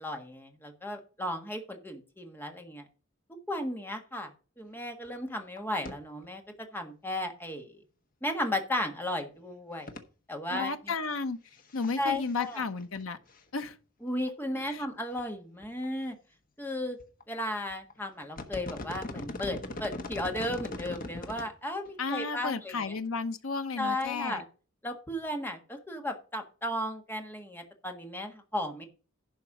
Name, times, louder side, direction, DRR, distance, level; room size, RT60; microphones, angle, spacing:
voice 1, 0.0-2.9 3.5-4.3 4.6-6.4 6.7-7.8 8.2-9.9 10.3-10.9 12.0-12.6 14.0-16.2 16.6-17.0 17.3-22.9 23.8-24.4 24.8-28.8, left 1 dB, 10° left, 1.6 m, -35 dB
sound 1, 5.0-5.1 5.4-5.6 5.8-5.9 6.2-6.3 8.6-8.7 9.9-10.0 11.6-12.0 12.2-13.0 13.4-13.5 14.3-14.4 14.8-14.9 15.2-15.3 15.6-16.0 17.0-17.2 17.7-17.9 18.2-21.5 21.9-22.0, left 2 dB, 45° left, 1.3 m, -40 dB
voice 2, 10.5-11.4 11.7-13.2 13.5-13.8 14.6-14.8 22.0-24.4, left 4 dB, 80° left, 0.9 m, -33 dB
11.0 x 4.7 x 6.0 m
head